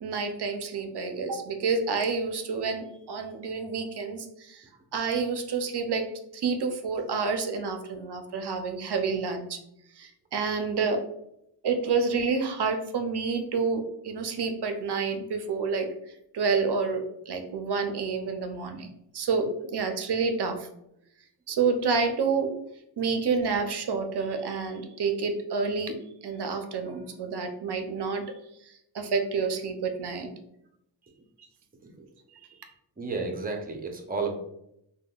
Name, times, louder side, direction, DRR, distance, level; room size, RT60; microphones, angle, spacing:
voice 1, 0.0-4.6 4.9-9.6 10.0-11.0 11.6-15.9 16.3-18.9 19.1-20.7 21.5-22.5 23.0-26.0 26.2-28.2 28.6-30.3, right 4 dB, 65° right, 6 dB, 0.6 m, -29 dB
voice 2, 33.0-34.3, right 4 dB, 20° right, 3 dB, 0.6 m, -32 dB
3.5 x 2.2 x 2.3 m, 0.79 s
cardioid pair, 50°, 44 cm